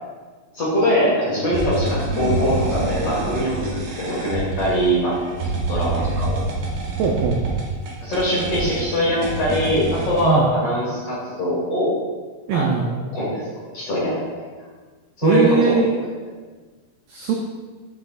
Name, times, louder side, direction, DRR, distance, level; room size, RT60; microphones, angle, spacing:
voice 1, 0.5-5.2 5.7-6.4 8.0-11.9 12.5-12.9 13.1-13.4 13.7-14.4 15.2-16.0, equal, 50° left, -8 dB, 2.1 m, -22 dB
sound 1, 1.5-10.3, right 2 dB, 70° right, 2.0 m, -27 dB
voice 2, 7.0-7.4 10.2-10.5 12.5-12.9 15.2-16.0 17.1-17.4, right 6 dB, 85° right, 1 dB, 2.0 m, -20 dB
7.5 x 6.2 x 2.4 m, 1.4 s
omnidirectional pair, 4.6 m